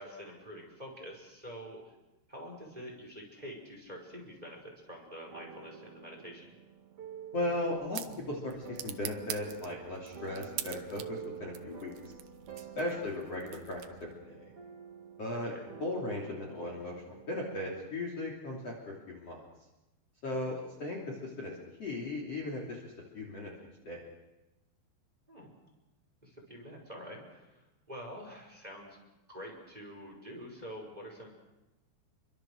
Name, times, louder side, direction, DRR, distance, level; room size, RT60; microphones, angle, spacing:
voice 1, 0.0-1.9 2.3-6.5 15.3-15.6 20.3-20.6 25.3-25.5 26.2-29.0 29.3-31.3, equal, 10° right, 1 dB, 5.0 m, -46 dB
sound 1, 5.3-17.9, right 7 dB, 45° right, 2.4 m, -49 dB
voice 2, 7.3-11.9 12.6-14.5 15.2-15.5 15.8-19.4 20.2-22.8 23.1-23.5 23.8-24.0, left 1 dB, 40° left, -1 dB, 3.8 m, -37 dB
sound 2, 7.3-14.2, right 12 dB, 70° right, 2.5 m, -45 dB
28.5 x 24.0 x 6.6 m, 0.98 s
omnidirectional pair, 5.0 m